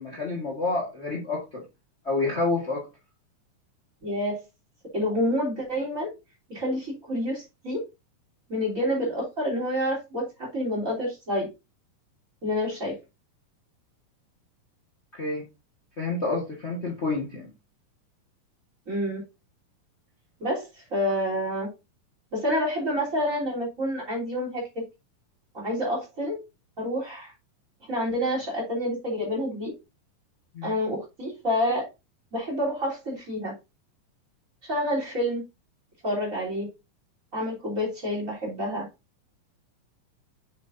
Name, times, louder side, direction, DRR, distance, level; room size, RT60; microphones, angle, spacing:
voice 1, 0.0-1.6 2.0-2.9 15.1-15.4 16.0-17.5 30.5-30.7, left 3 dB, 55° left, -1 dB, 0.7 m, -28 dB
voice 2, 4.0-4.4 4.9-6.1 6.5-7.8 8.5-11.5 12.4-12.9 18.9-19.2 20.4-21.7 22.3-24.7 25.5-26.4 26.8-27.3 27.9-29.7 30.6-31.8 32.3-33.5 34.7-35.4 36.0-36.7 37.3-38.8, equal, 25° right, -2 dB, 3.5 m, -28 dB
7.9 x 6.8 x 2.6 m, 0.26 s
omnidirectional pair, 3.9 m